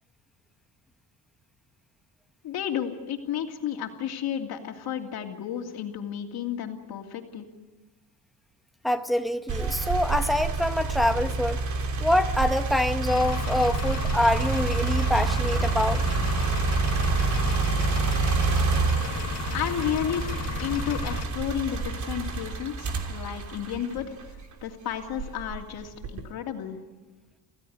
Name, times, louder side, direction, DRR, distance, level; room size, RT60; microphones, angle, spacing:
voice 1, 2.4-7.5 19.5-20.3 20.6-24.1 24.6-26.8, left 9 dB, 75° left, 3 dB, 2.8 m, -32 dB
voice 2, 8.8-11.6 12.0-16.0, left 1 dB, ahead, 7 dB, 0.9 m, -25 dB
sound 1, 9.5-24.5 25.1-26.3, right 4 dB, 50° right, 3.1 m, -28 dB
Engine, 13.1-21.2, left 6 dB, 40° left, 1.7 m, -34 dB
26.5 x 16.5 x 9.5 m, 1.2 s
cardioid pair, 155°, 37 cm